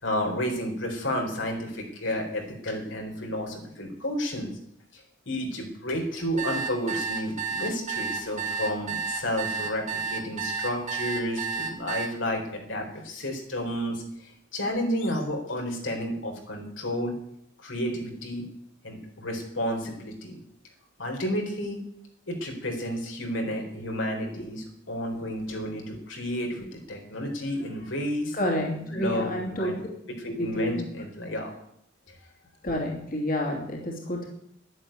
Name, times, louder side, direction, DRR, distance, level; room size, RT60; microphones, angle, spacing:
voice 1, 0.0-4.6 4.9-17.2 17.6-18.4 18.8-20.4 21.0-21.8 22.3-28.6 28.9-29.8 30.2-31.5 32.1-32.2, equal, 85° left, 2 dB, 4.1 m, -31 dB
sound 1, 6.2-12.1, right 5 dB, 40° right, 2.3 m, -31 dB
voice 2, 28.3-29.7 30.3-30.8 32.6-34.3, equal, 50° left, -1 dB, 2.8 m, -29 dB
11.0 x 11.0 x 9.1 m, 0.74 s
head